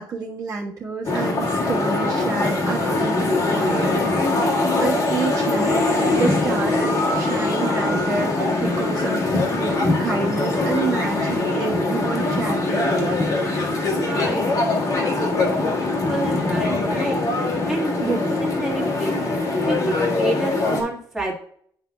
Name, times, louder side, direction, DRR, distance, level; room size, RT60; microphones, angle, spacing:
voice 1, 0.0-3.9 4.2-13.1 18.0-18.3, right 4 dB, 45° right, -5 dB, 1.4 m, -28 dB
sound 1, 1.0-20.8, left 2 dB, 45° left, 1.7 m, -22 dB
voice 2, 14.0-14.6 15.2-15.3 15.6-17.2 17.7-21.3, right 2 dB, 5° right, -4 dB, 1.8 m, -29 dB
10.5 x 5.3 x 2.3 m, 0.62 s
cardioid pair, 170°, 8 cm